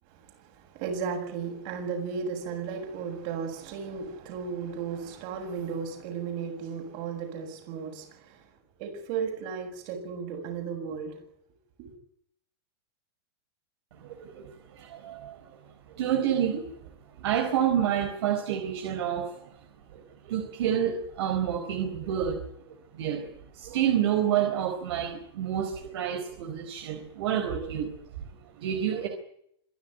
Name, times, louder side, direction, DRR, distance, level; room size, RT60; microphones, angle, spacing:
voice 1, 0.6-8.4 8.8-11.2 11.8-11.9, right 6 dB, 50° right, 7.4 m, -35 dB
voice 2, 13.9-15.4 15.9-16.7 17.2-19.3 19.9-22.5 22.9-27.9 28.6-29.1, right 9 dB, 70° right, 4.4 m, -29 dB
26.0 x 12.0 x 9.5 m
supercardioid pair, 145°, 14 cm